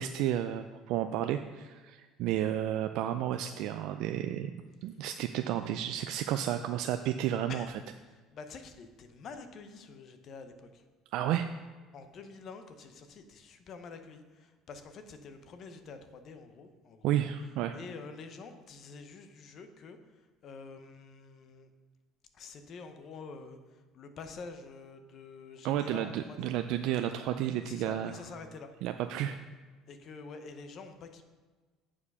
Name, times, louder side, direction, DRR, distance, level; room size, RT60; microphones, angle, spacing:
voice 1, 0.0-4.5 4.8-7.7 11.1-11.5 17.0-17.8 25.6-28.1 28.8-29.4, right 11 dB, 70° right, 7 dB, 0.3 m, -32 dB
voice 2, 8.1-10.9 11.9-17.2 17.7-20.0 20.4-21.7 22.3-26.5 27.6-28.7 29.9-31.2, left 4 dB, 45° left, 8 dB, 0.8 m, -47 dB
8.7 x 4.8 x 5.4 m, 1.3 s
cardioid pair, 130°, 0 cm